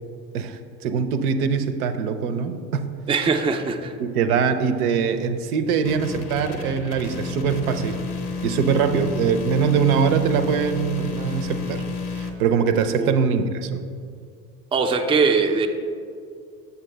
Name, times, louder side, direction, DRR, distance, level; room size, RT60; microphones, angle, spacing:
voice 1, 0.3-2.9 4.0-8.0 8.4-11.8 12.1-13.9, right 6 dB, 75° right, 9 dB, 0.6 m, -22 dB
voice 2, 3.1-3.9 13.0-13.2 14.7-15.7, right 4 dB, 15° right, 4 dB, 0.4 m, -21 dB
sound 1, 5.8-12.3, left 4 dB, 80° left, 0.8 m, -31 dB
6.8 x 6.7 x 3.3 m, 2.3 s
hypercardioid pair, 60°, 44 cm